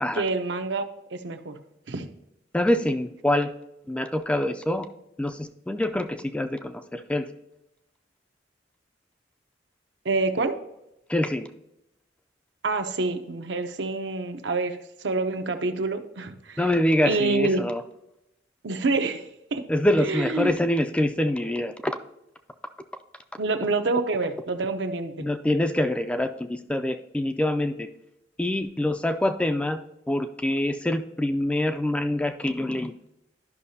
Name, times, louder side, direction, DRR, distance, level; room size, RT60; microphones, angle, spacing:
voice 1, 0.2-0.9 1.1-1.6 1.9-2.1 10.0-10.6 12.6-16.6 17.1-17.7 18.6-19.7 20.0-20.5 23.4-25.1, right 3 dB, 75° right, 7 dB, 0.7 m, -27 dB
voice 2, 2.5-3.5 3.9-4.9 5.2-7.3 11.1-11.5 16.6-17.8 19.7-22.0 25.2-27.9 28.4-29.8 30.1-32.9, left 1 dB, 5° left, 7 dB, 0.3 m, -25 dB
11.5 x 5.6 x 2.7 m, 0.84 s
head